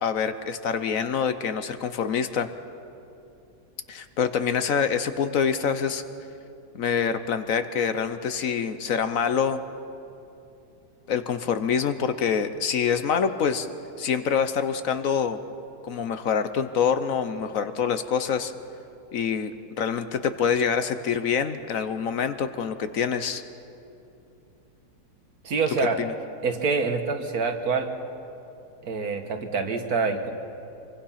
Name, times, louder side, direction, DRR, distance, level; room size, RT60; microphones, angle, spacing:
voice 1, 0.0-2.5 3.9-6.0 6.7-9.6 11.1-13.7 14.0-15.4 15.8-18.5 19.1-19.5 19.8-23.4 25.8-26.1, left 7 dB, 60° left, 10 dB, 1.2 m, -26 dB
voice 2, 25.4-26.0 26.4-27.9 28.8-30.3, right 4 dB, 65° right, 6 dB, 1.9 m, -26 dB
25.0 x 24.0 x 5.8 m, 2.8 s
omnidirectional pair, 1.7 m